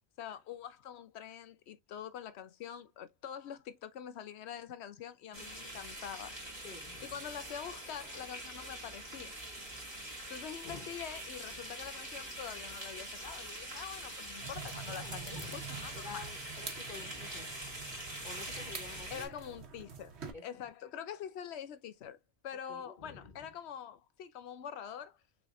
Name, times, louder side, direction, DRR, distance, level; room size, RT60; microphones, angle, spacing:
voice 1, 0.2-6.3 7.0-9.3 10.3-16.2 19.1-20.2 20.4-22.2 22.4-25.2, left 9 dB, 85° left, 0.9 m, -45 dB
sound 1, 5.3-19.3, right 1 dB, 25° right, 2.4 m, -44 dB
voice 2, 6.6-7.1 10.6-10.9 14.9-15.6 15.9-17.5 18.2-19.3 20.3-20.6 22.7-23.5, left 4 dB, 50° left, 1.2 m, -49 dB
sound 2, 14.4-20.3, right 6 dB, 90° right, 1.3 m, -47 dB
6.2 x 3.1 x 2.5 m
omnidirectional pair, 1.1 m